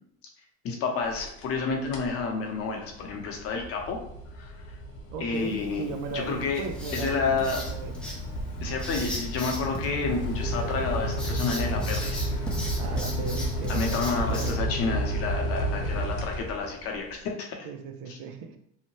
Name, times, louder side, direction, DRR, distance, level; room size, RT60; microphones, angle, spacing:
voice 1, 0.6-4.0 4.4-4.5 5.2-5.8 6.1-6.6 6.9-7.6 8.6-12.5 13.7-17.7 18.1-18.2, left 4 dB, 40° left, 1 dB, 0.7 m, -30 dB
sound 1, 1.0-1.6 1.9-2.2 2.6-16.9, equal, 75° left, 0.8 m, -32 dB
voice 2, 5.1-8.0 12.8-14.7 15.8-16.0 17.6-18.6, right 5 dB, 60° right, 7 dB, 0.5 m, -37 dB
Writing, 5.3-14.5, equal, 5° left, 0.5 m, -39 dB
2.7 x 2.1 x 3.0 m, 0.71 s
supercardioid pair, 125°, 34 cm